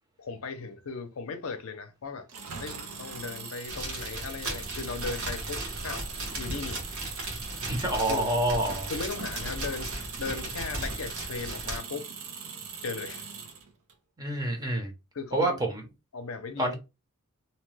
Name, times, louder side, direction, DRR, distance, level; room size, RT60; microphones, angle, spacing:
voice 1, 0.2-2.3 2.6-6.1 6.4-6.8 8.1-8.3 8.9-9.9 10.2-12.1 12.8-13.3 15.1-15.6 16.1-16.7, left 4 dB, 65° left, 0.6 m, -37 dB
Engine, 2.3-13.9, right 6 dB, 90° right, 0.7 m, -41 dB
sound 1, 3.7-11.8, right 1 dB, 70° right, 1.3 m, -36 dB
voice 2, 7.7-8.9 14.2-14.9 15.3-15.8 16.6-16.7, right 1 dB, 20° right, 0.7 m, -27 dB
2.8 x 2.2 x 3.1 m
head